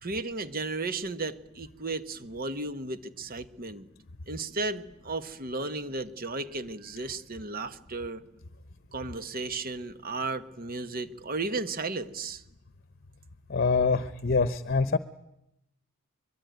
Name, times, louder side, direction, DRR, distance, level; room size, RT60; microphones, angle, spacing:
voice 1, 0.0-3.9 4.3-8.2 8.9-12.4, right 3 dB, 45° right, 12 dB, 1.3 m, -34 dB
voice 2, 13.5-15.0, left 4 dB, 45° left, 14 dB, 0.9 m, -25 dB
24.0 x 22.5 x 9.4 m, 0.85 s
head